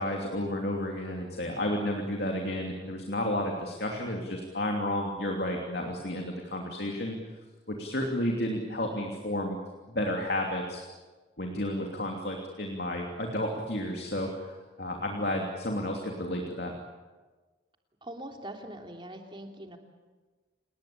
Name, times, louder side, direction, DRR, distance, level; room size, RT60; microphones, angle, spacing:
voice 1, 0.0-7.2 7.7-9.6 9.9-10.8 11.4-16.7, left 1 dB, 60° left, 1 dB, 3.0 m, -32 dB
voice 2, 18.0-19.8, right 1 dB, 25° right, 3 dB, 3.0 m, -42 dB
28.5 x 19.5 x 8.7 m, 1.3 s
head